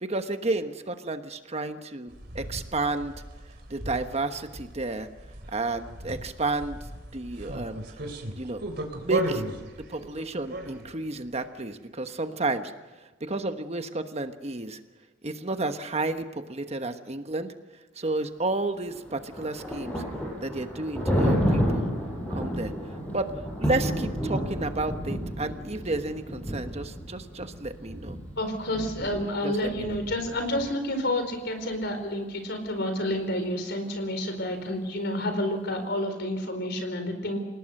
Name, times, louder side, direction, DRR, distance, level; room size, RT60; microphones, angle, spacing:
voice 1, 0.0-3.1 3.7-5.1 5.5-6.8 7.1-7.8 8.4-8.6 9.0-9.4 9.9-12.7 13.2-14.8 15.2-17.5 18.0-20.0 20.4-21.9 22.3-22.7 23.1-23.3 23.6-28.2 29.4-30.0, right 2 dB, 35° right, 8 dB, 1.2 m, -31 dB
sound 1, 2.1-11.1, right 1 dB, 55° right, 3.5 m, -36 dB
Thunder, 18.9-30.7, equal, 10° left, 7.1 m, -31 dB
voice 2, 28.4-37.4, left 1 dB, 60° left, 7 dB, 4.6 m, -29 dB
29.0 x 18.5 x 6.6 m, 1.3 s
head